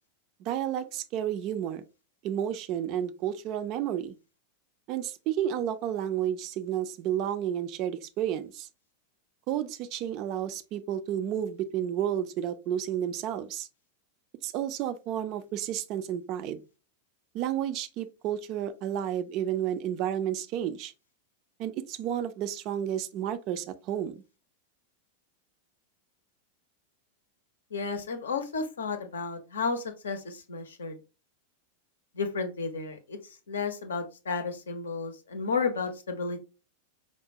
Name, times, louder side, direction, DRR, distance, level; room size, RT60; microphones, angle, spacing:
voice 1, 0.4-1.8 2.2-4.2 4.9-8.7 9.5-13.7 14.4-16.6 17.3-20.9 21.6-24.2, right 10 dB, 40° right, 0.4 m, -31 dB
voice 2, 27.7-31.0 32.1-36.4, left 4 dB, 70° left, 0.6 m, -32 dB
4.8 x 2.2 x 2.7 m
figure-of-eight pair, 90°, 0 cm